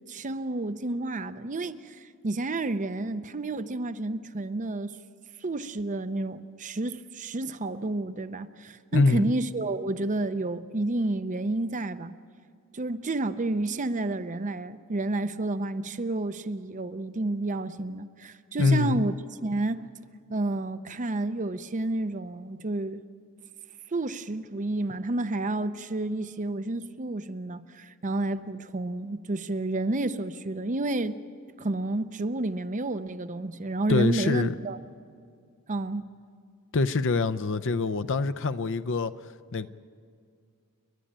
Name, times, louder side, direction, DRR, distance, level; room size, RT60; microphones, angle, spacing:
voice 1, 0.1-5.0 5.4-12.1 12.7-19.1 19.4-19.9 20.3-23.0 23.9-31.2 31.6-34.8 35.7-36.1, right 2 dB, 35° right, 0.6 m, -30 dB
voice 2, 8.9-9.2 18.6-19.1 33.9-34.5 36.7-39.1 39.5-39.7, left 3 dB, 60° left, 0.6 m, -24 dB
29.5 x 11.5 x 8.8 m
head